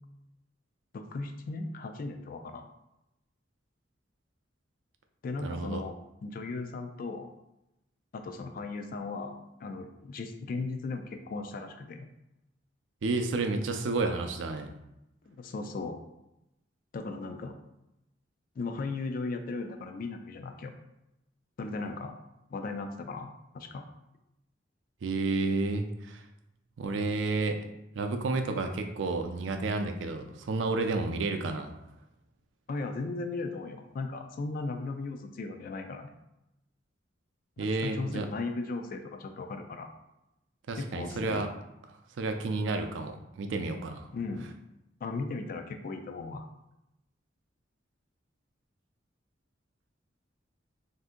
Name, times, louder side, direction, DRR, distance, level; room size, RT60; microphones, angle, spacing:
voice 1, 0.9-2.7 5.2-5.9 6.2-7.3 8.1-12.1 15.3-16.0 16.9-17.5 18.6-20.7 21.6-22.1 22.5-23.8 32.7-36.1 37.6-39.9 40.8-41.4 44.1-44.5 45.0-46.5, left 3 dB, 50° left, 6 dB, 0.3 m, -37 dB
voice 2, 5.4-5.8 13.0-14.7 25.0-26.2 26.8-27.6 27.9-31.7 37.6-38.3 40.7-41.5 42.2-44.1, right 3 dB, 80° right, 6 dB, 0.4 m, -31 dB
2.7 x 2.5 x 3.6 m, 0.88 s
head